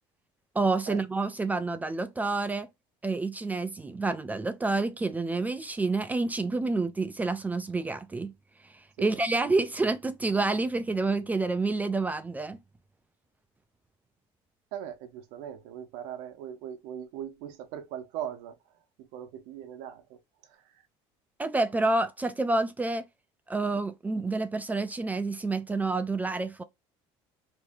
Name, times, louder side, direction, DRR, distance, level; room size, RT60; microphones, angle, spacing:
voice 1, 0.6-2.7 3.0-8.3 9.0-12.6 21.4-23.0 23.5-26.6, right 3 dB, 15° right, 0.4 m, -28 dB
voice 2, 14.7-18.6 19.1-20.2 20.5-20.6, right 10 dB, 80° right, 0.8 m, -39 dB
3.0 x 2.7 x 3.5 m
cardioid pair, 125°, 12 cm